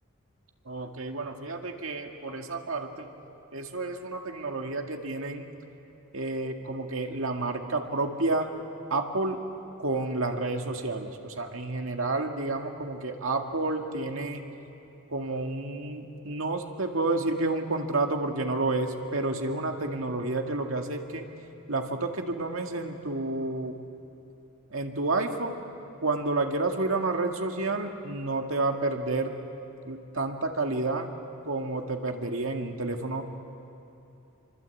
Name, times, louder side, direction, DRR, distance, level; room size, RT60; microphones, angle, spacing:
voice 1, 0.7-3.1 3.5-5.5 6.1-8.5 8.9-9.4 9.8-14.4 15.1-21.3 21.7-23.8 24.7-25.6 26.0-29.3 29.9-31.1 31.5-33.2, right 2 dB, 70° right, 3 dB, 2.1 m, -30 dB
26.5 x 25.0 x 8.5 m, 2.8 s
head